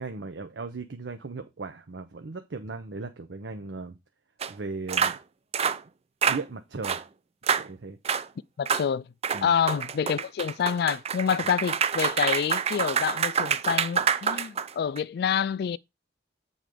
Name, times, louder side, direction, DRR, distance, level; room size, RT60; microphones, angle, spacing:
voice 1, 0.0-4.0 4.5-5.2 6.3-7.0 7.6-8.0 9.3-9.5, right 3 dB, 85° right, 0.7 m, -37 dB
sound 1, 4.4-4.5 4.9-5.2 5.5-5.8 6.2-6.4 6.8-7.0 7.4-7.7 8.0-8.2 8.7-8.9 9.2-15.0, right 7 dB, 35° right, 0.4 m, -27 dB
voice 2, 8.6-9.1 9.4-15.8, left 7 dB, 65° left, 0.3 m, -27 dB
7.7 x 4.0 x 5.0 m
head